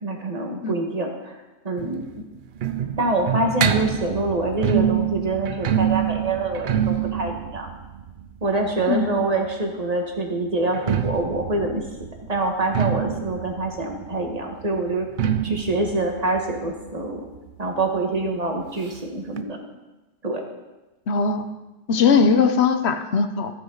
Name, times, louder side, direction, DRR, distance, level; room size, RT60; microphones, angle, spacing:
voice 1, 0.0-1.4 1.6-2.0 3.0-7.7 8.4-11.9 12.3-15.1 15.4-17.2 17.6-19.6 20.2-20.4, right 2 dB, 30° right, 2 dB, 1.7 m, -25 dB
sound 1, 1.8-9.5 10.6-18.0 18.2-18.3 18.6-18.7 19.4-19.5, right 9 dB, 55° right, 0.6 m, -26 dB
voice 2, 21.1-21.5 21.9-23.5, left 5 dB, 60° left, 9 dB, 1.1 m, -19 dB
14.5 x 9.5 x 3.9 m, 1.1 s
omnidirectional pair, 1.3 m